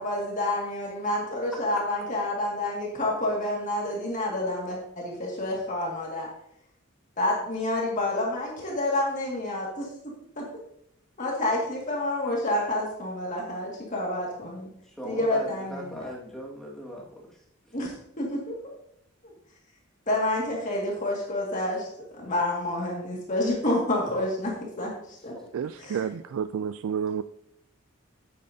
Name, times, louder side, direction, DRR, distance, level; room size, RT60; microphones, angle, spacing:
voice 1, 0.0-6.3 7.2-9.9 10.4-10.5 11.2-14.7 15.0-16.1 17.7-18.6 20.1-21.9 22.1-25.3 25.8-26.0, left 1 dB, 35° left, -3 dB, 1.9 m, -29 dB
voice 2, 14.8-17.4 25.3-25.5, equal, 5° left, -3 dB, 1.8 m, -39 dB
voice 3, 25.5-27.2, right 7 dB, 80° right, 13 dB, 0.3 m, -30 dB
9.2 x 8.5 x 2.7 m, 0.74 s
head